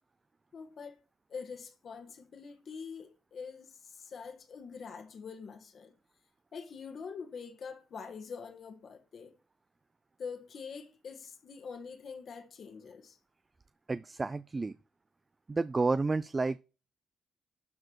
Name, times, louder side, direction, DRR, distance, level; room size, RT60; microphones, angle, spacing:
voice 1, 0.5-1.0 1.3-6.0 6.5-9.4 10.2-13.2, left 5 dB, 55° left, 1.6 m, -45 dB
voice 2, 13.9-14.7 15.5-16.6, right 3 dB, 25° right, 0.4 m, -30 dB
12.0 x 4.8 x 4.6 m
cardioid pair, 90°, 0 cm